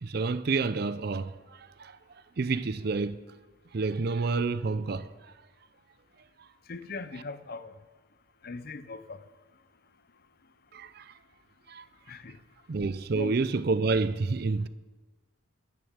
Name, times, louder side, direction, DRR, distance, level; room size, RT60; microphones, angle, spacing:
voice 1, 0.0-2.0 2.4-3.2 3.7-5.1 7.1-7.2 10.7-11.1 11.7-11.9 12.7-14.7, right 4 dB, 50° right, 0.5 m, -29 dB
voice 2, 6.7-7.7 8.4-9.2 12.1-12.3 13.1-13.3, left 3 dB, 45° left, 0.6 m, -39 dB
10.5 x 10.5 x 7.3 m
head